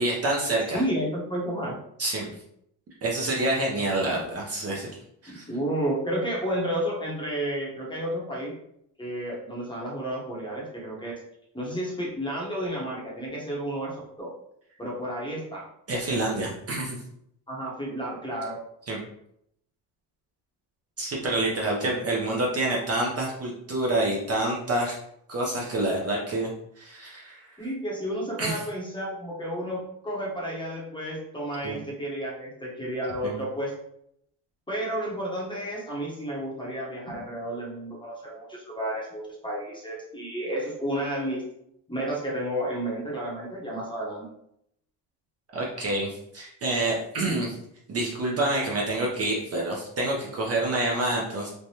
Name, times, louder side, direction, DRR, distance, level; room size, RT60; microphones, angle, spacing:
voice 1, 0.0-0.8 2.0-2.3 3.0-4.9 5.2-5.4 15.9-17.0 18.9-19.0 21.0-25.0 25.3-26.5 26.8-27.4 28.4-28.6 31.6-31.8 33.2-33.4 37.1-37.2 45.5-47.6 47.9-51.5, right 2 dB, 35° right, -3 dB, 0.7 m, -27 dB
voice 2, 0.7-1.7 5.3-8.6 9.0-11.1 11.5-14.3 14.8-15.6 17.5-18.6 27.6-29.8 30.0-33.7 34.7-41.4 41.9-44.3, right 1 dB, 10° left, -4 dB, 0.8 m, -31 dB
3.3 x 2.1 x 2.7 m, 0.74 s
cardioid pair, 110°, 43 cm